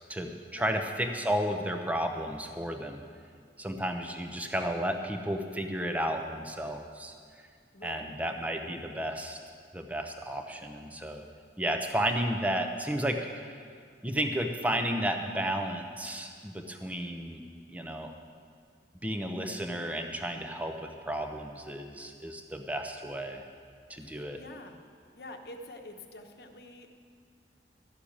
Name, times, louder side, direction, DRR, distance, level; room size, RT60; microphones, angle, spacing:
voice 1, 0.1-3.0 3.6-7.1 7.8-9.4 9.7-11.2 11.6-13.6 14.0-17.4 17.7-18.1 19.0-23.4 23.9-24.4, right 1 dB, 10° right, 5 dB, 0.8 m, -33 dB
voice 2, 7.7-8.1 24.0-24.8 25.1-26.9, left 1 dB, 65° left, 4 dB, 1.1 m, -47 dB
13.0 x 6.8 x 8.7 m, 2.1 s
head